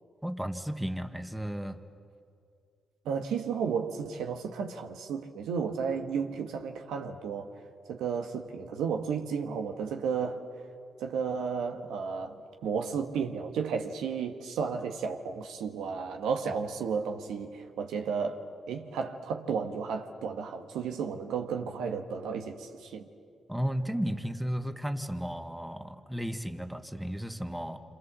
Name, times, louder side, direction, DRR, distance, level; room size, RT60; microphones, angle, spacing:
voice 1, 0.2-1.8 23.5-27.8, equal, 5° right, 6 dB, 1.8 m, -34 dB
voice 2, 3.0-7.5 7.9-10.4 11.0-18.4 18.7-23.1, right 6 dB, 85° right, 4 dB, 1.6 m, -33 dB
27.0 x 27.0 x 7.6 m, 2.4 s
supercardioid pair, 60°, 0 cm